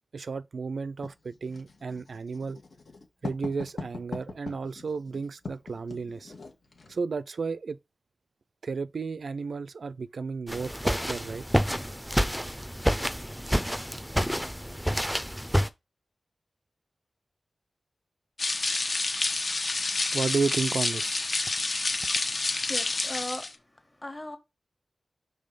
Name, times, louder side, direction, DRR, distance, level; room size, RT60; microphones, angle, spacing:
voice 1, 0.1-2.6 3.2-6.3 6.9-7.8 8.6-11.5 20.1-21.2, right 4 dB, 75° right, 0.3 m, -33 dB
Writing, 1.0-7.0, left 3 dB, 65° left, 1.6 m, -42 dB
sound 1, 10.5-15.7, equal, ahead, 0.6 m, -28 dB
sound 2, 18.4-23.5, left 3 dB, 50° left, 1.1 m, -28 dB
voice 2, 22.7-23.5 24.0-24.4, left 1 dB, 15° left, 1.5 m, -36 dB
5.5 x 3.9 x 5.1 m
wide cardioid pair, 90°, 0 cm